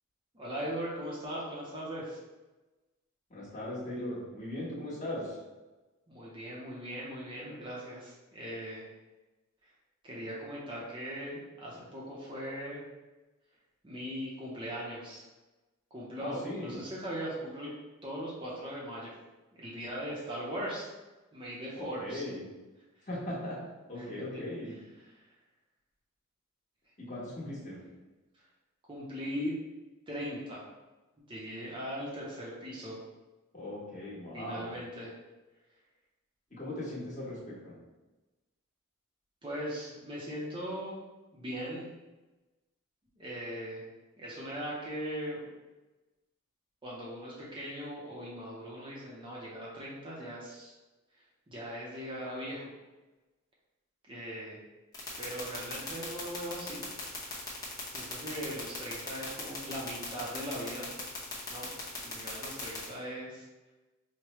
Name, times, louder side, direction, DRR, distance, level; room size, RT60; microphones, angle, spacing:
voice 1, 0.3-2.2 6.1-8.9 9.6-9.7 10.0-12.8 13.8-15.2 15.9-17.7 18.0-19.1 19.6-20.9 21.3-22.2 25.1-25.3 28.9-29.6 30.1-30.7 31.3-33.0 34.3-35.2 39.4-41.0 41.3-41.9 43.2-43.8 44.2-45.5 46.8-50.7 51.5-52.7 54.1-54.6 55.2-56.8 57.2-57.4 57.9-60.9 61.5-61.7 62.0-63.7, equal, 25° right, -5 dB, 0.6 m, -39 dB
voice 2, 3.3-5.4 16.2-16.8 21.8-22.4 23.1-23.6 23.9-24.8 27.0-27.8 33.5-34.7 36.5-37.7, left 1 dB, 35° left, -7 dB, 1.2 m, -39 dB
sound 1, 54.9-62.8, left 3 dB, 15° left, 0.8 m, -39 dB
4.7 x 2.1 x 3.0 m, 1.1 s
head